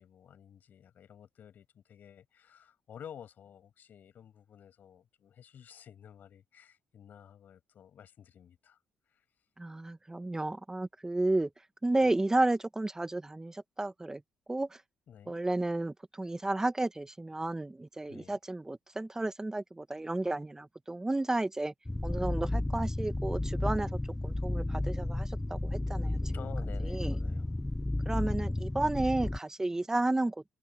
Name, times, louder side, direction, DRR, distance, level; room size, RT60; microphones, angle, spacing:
voice 1, 0.0-8.8 9.1-9.2 12.0-12.2 15.1-15.4 18.1-18.4 26.3-27.6, left 9 dB, 65° left, 6.7 m, -52 dB
voice 2, 9.6-11.5 11.8-14.2 14.5-14.7 15.3-21.7 22.0-23.9 24.2-26.2 26.9-27.2 28.1-30.4, right 2 dB, 15° right, 1.8 m, -32 dB
sound 1, 21.8-29.4, left 1 dB, 10° left, 0.6 m, -32 dB
supercardioid pair, 65°, 3 cm